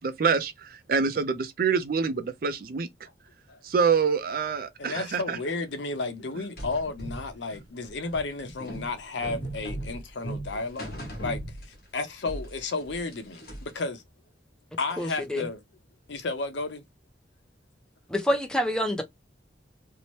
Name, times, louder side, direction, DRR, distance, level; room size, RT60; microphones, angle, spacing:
voice 1, 0.0-2.9 3.6-5.4, right 5 dB, 50° right, 0.4 m, -26 dB
voice 2, 4.8-11.4 11.9-14.0 14.8-15.6 16.1-16.8, left 3 dB, 85° left, 0.7 m, -32 dB
sound 1, 6.6-12.0 12.3-13.8, right 1 dB, 55° left, 1.1 m, -38 dB
voice 3, 15.0-15.5 18.1-19.0, equal, 5° left, 0.4 m, -27 dB
2.8 x 2.1 x 3.0 m
head